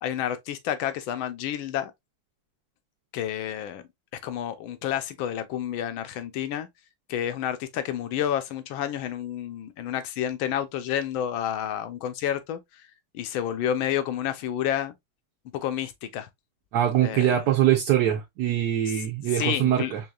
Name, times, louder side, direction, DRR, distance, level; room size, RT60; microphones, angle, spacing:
voice 1, 0.0-1.9 3.1-3.8 4.2-6.7 7.1-12.6 13.1-14.9 15.5-16.3 17.0-17.4 19.3-19.9, left 10 dB, 85° left, 1.4 m, -29 dB
voice 2, 16.7-20.0, right 11 dB, 65° right, 1.2 m, -23 dB
4.7 x 2.9 x 2.3 m
omnidirectional pair, 2.1 m